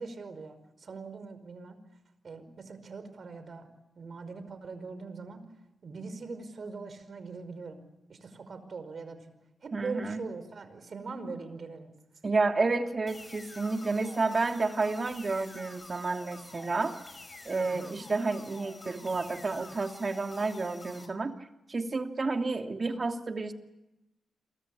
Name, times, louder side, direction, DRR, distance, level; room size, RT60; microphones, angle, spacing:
voice 1, 0.0-1.8 2.2-3.7 3.9-5.4 5.8-7.8 8.1-9.3 9.6-11.9 17.6-18.0, right 4 dB, 55° right, 11 dB, 5.1 m, -41 dB
voice 2, 9.7-10.2 12.2-17.0 17.4-21.3 21.7-23.5, right 3 dB, 40° right, 5 dB, 2.8 m, -30 dB
sound 1, 13.1-21.1, left 2 dB, 30° left, 5.8 m, -48 dB
28.0 x 23.5 x 8.5 m, 0.93 s
cardioid pair, 70°, 0 cm